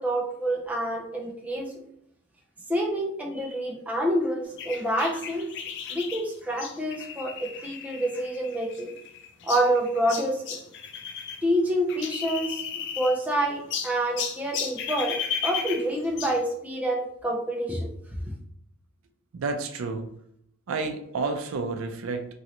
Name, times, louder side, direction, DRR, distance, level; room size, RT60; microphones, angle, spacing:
voice 1, 0.0-1.7 2.7-5.5 5.9-8.9 9.4-10.6 11.4-12.6 13.0-15.2 15.4-17.9, right 1 dB, 5° right, -1 dB, 0.5 m, -27 dB
sound 1, 4.6-11.4 11.7-13.3 13.7-16.4, left 7 dB, 50° left, 0.4 m, -35 dB
voice 2, 19.3-20.1 20.7-22.3, right 3 dB, 65° right, 6 dB, 0.4 m, -30 dB
3.0 x 2.5 x 2.8 m, 0.72 s
head